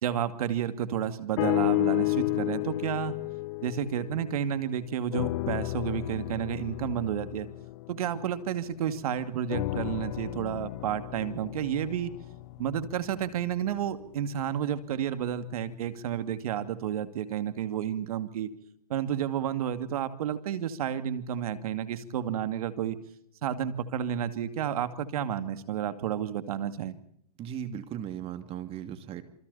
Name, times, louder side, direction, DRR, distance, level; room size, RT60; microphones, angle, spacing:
voice 1, 0.0-3.2 3.6-7.5 7.9-12.1 12.6-18.5 18.9-23.0 23.4-26.9, right 9 dB, 70° right, 10 dB, 2.5 m, -31 dB
sound 1, 1.4-4.7 5.1-8.9 9.5-13.7 14.4-14.5, left 20 dB, 50° left, 0.9 m, -32 dB
voice 2, 27.4-29.2, right 9 dB, 30° right, 9 dB, 2.7 m, -37 dB
27.5 x 26.5 x 4.3 m, 0.67 s
hypercardioid pair, 135°, 20 cm